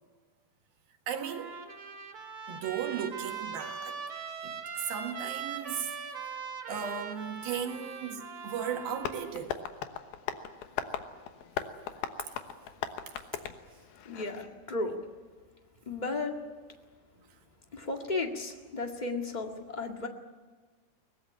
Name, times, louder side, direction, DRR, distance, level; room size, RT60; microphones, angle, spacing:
voice 1, 1.1-1.6 2.5-4.0 4.4-5.9 6.7-9.6, right 8 dB, 75° right, 3.6 m, -36 dB
Trumpet, 1.2-9.3, right 6 dB, 40° right, 2.6 m, -41 dB
Tap, 9.0-14.5, left 9 dB, 85° left, 3.1 m, -38 dB
voice 2, 14.0-15.0 15.8-16.3 17.7-20.1, left 3 dB, 30° left, 0.8 m, -34 dB
23.0 x 19.0 x 10.0 m
omnidirectional pair, 4.3 m